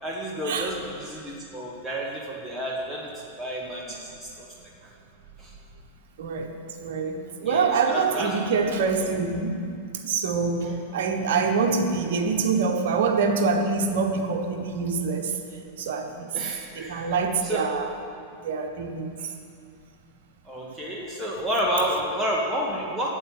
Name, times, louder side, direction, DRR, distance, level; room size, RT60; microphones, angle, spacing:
voice 1, 0.0-3.1 3.4-4.5 5.4-5.5 7.4-8.4 16.3-17.1 17.4-17.6 20.5-23.1, equal, ahead, -5 dB, 1.4 m, -30 dB
voice 2, 6.2-6.5 6.8-9.7 10.0-15.4 15.8-16.3 16.7-17.9 18.4-19.1, right 4 dB, 55° right, 4 dB, 1.1 m, -25 dB
8.9 x 8.0 x 8.6 m, 2.4 s
figure-of-eight pair, 90°, 0 cm